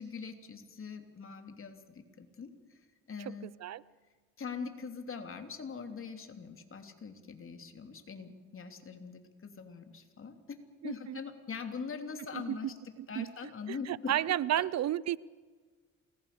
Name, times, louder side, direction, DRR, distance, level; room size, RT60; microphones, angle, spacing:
voice 1, 0.0-3.5 4.4-12.7 13.1-14.7, left 5 dB, 45° left, 3.2 m, -43 dB
voice 2, 3.3-3.8 10.8-11.2 12.3-12.6 13.0-13.3 13.7-15.2, right 12 dB, 60° right, 0.6 m, -32 dB
28.0 x 20.0 x 7.0 m
cardioid pair, 90°, 30 cm